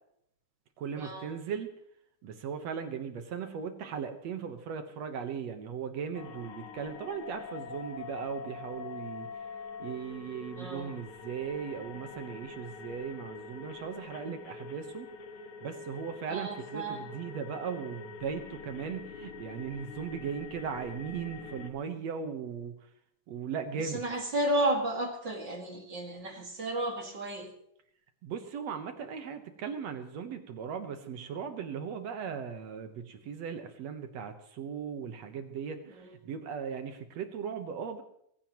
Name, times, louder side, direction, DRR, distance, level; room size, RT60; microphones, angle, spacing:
voice 1, 0.8-1.7 2.2-9.5 9.8-15.1 15.6-22.9 23.3-24.0 28.2-38.0, right 7 dB, 65° right, 7 dB, 2.1 m, -38 dB
sound 1, 6.1-21.7, left 5 dB, 65° left, 2.5 m, -45 dB
voice 2, 10.6-10.9 16.3-17.1 23.8-27.5 36.0-36.1, right 1 dB, 35° right, 2 dB, 2.4 m, -32 dB
23.0 x 15.0 x 3.0 m, 0.72 s
omnidirectional pair, 3.7 m